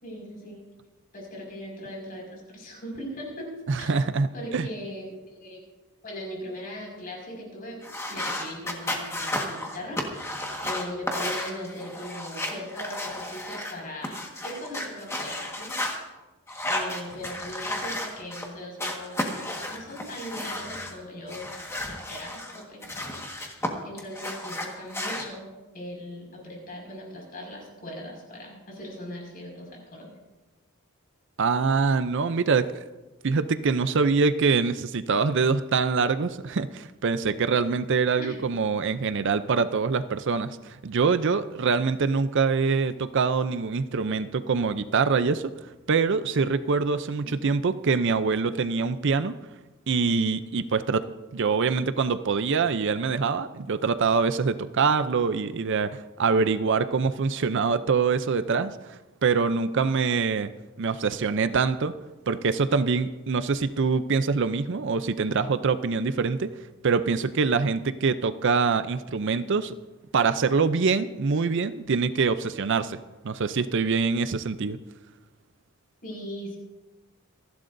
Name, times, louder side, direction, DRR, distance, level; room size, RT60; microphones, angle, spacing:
voice 1, 0.0-0.6 1.1-3.9 4.3-5.1 5.4-5.6 6.0-7.8 8.1-15.7 16.7-21.4 21.9-30.2 38.2-38.4 47.2-47.5 76.0-76.6, equal, 40° left, -1 dB, 5.5 m, -39 dB
voice 2, 3.7-4.7 31.4-32.8 33.2-45.5 45.9-49.4 49.9-60.5 60.8-61.9 62.3-66.5 66.8-69.7 70.1-73.0 73.2-74.8, right 5 dB, 55° right, 12 dB, 0.5 m, -24 dB
sound 1, 7.8-13.7 14.0-16.0 16.5-18.5 18.8-20.9 21.3-23.7 24.0-25.2, left 1 dB, 10° left, 1.5 m, -33 dB
27.0 x 11.5 x 2.6 m, 1.1 s
head